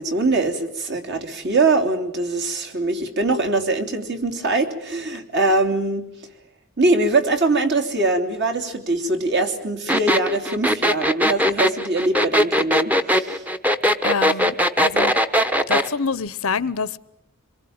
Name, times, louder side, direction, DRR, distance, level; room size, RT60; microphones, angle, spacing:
voice 1, 0.0-6.1 6.8-13.5, right 2 dB, 50° right, 3.2 m, -22 dB
sound 1, 9.9-15.9, equal, 5° right, 1.0 m, -19 dB
voice 2, 14.0-15.1 15.7-17.2, left 5 dB, 80° left, 0.9 m, -26 dB
26.5 x 22.5 x 8.8 m
head